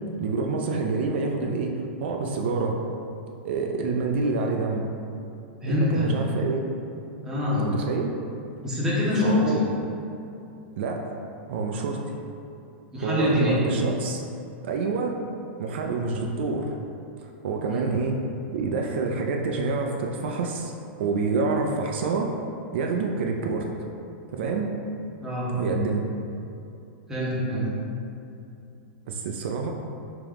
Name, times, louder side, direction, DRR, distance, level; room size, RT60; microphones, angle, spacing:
voice 1, 0.2-2.8 3.4-4.9 5.7-6.6 7.5-8.1 9.2-9.6 10.8-11.1 11.5-12.0 13.0-14.2 14.6-15.2 15.6-16.7 17.2-18.2 18.5-20.7 21.0-22.3 22.7-23.7 24.3-24.7 25.6-26.0 29.1-29.7, right 4 dB, 70° right, 1 dB, 0.4 m, -27 dB
voice 2, 5.6-6.1 7.2-7.7 8.6-9.6 12.9-13.6 17.7-17.9 25.2-25.5 27.1-27.7, left 1 dB, 10° right, -8 dB, 0.8 m, -25 dB
3.5 x 2.9 x 3.5 m, 2.7 s
supercardioid pair, 150°, 6 cm